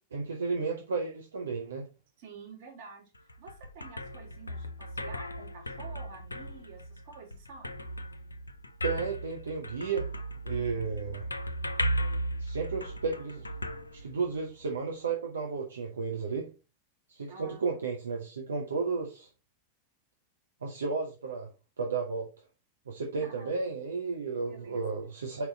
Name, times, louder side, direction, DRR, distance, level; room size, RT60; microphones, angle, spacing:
voice 1, 0.1-1.9 8.8-10.1 10.4-11.3 12.4-13.5 13.9-16.5 17.1-19.3 20.6-21.5 21.8-22.3 22.9-25.5, right 4 dB, 70° right, 1 dB, 1.0 m, -33 dB
voice 2, 2.2-7.8 10.7-10.9 17.3-17.8 23.2-23.5 24.5-24.8, right 5 dB, 50° right, 0 dB, 2.5 m, -49 dB
sound 1, 3.1-14.6, right 1 dB, 80° left, 0.5 m, -36 dB
5.3 x 4.7 x 4.1 m, 0.30 s
figure-of-eight pair, 90°, 0 cm